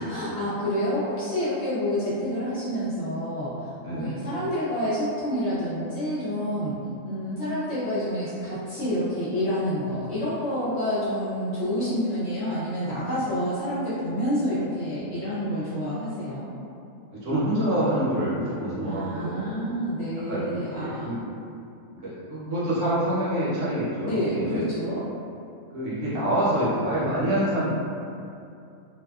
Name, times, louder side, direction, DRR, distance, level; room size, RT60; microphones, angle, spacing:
voice 1, 0.0-6.8 7.0-16.5 18.8-21.2 24.0-25.0, equal, 65° left, -10 dB, 0.7 m, -28 dB
voice 2, 3.7-4.2 17.1-19.5 20.3-21.2 22.0-24.7 25.7-27.7, right 1 dB, 65° right, -9 dB, 1.0 m, -26 dB
2.6 x 2.3 x 2.3 m, 2.5 s
omnidirectional pair, 1.5 m